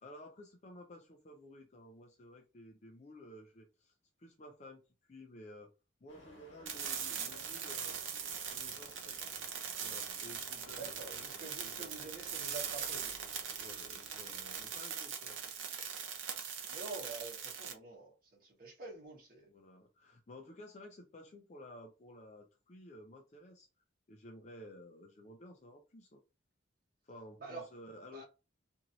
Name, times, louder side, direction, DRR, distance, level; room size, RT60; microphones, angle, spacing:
voice 1, 0.0-5.7 6.0-8.0 8.4-9.2 9.8-12.1 13.6-15.8 19.5-23.7 24.1-26.2 27.0-28.2, left 1 dB, 35° left, 0.4 m, -54 dB
sound 1, 6.1-14.8, left 1 dB, 85° left, 1.3 m, -58 dB
sound 2, 6.7-17.7, right 7 dB, 80° right, 0.7 m, -41 dB
voice 2, 10.8-13.1 16.7-19.5 27.4-27.7 28.1-28.2, right 3 dB, 45° right, 1.4 m, -47 dB
2.9 x 2.7 x 2.6 m
head